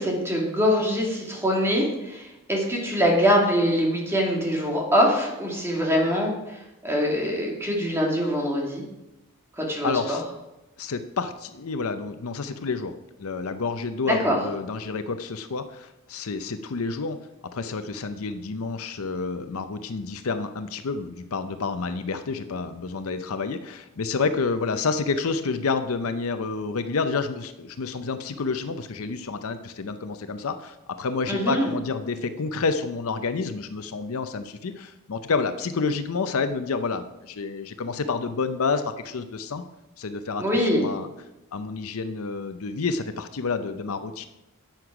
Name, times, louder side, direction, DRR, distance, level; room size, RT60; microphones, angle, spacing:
voice 1, 0.0-6.6 6.8-8.8 9.6-10.2 14.1-14.4 31.3-31.7 40.4-40.8, equal, 10° right, -1 dB, 2.3 m, -23 dB
voice 2, 9.8-10.2 10.8-17.2 17.5-39.6 40.0-41.1 41.5-44.3, left 4 dB, 70° left, 10 dB, 0.6 m, -29 dB
10.5 x 8.1 x 4.9 m, 0.96 s
head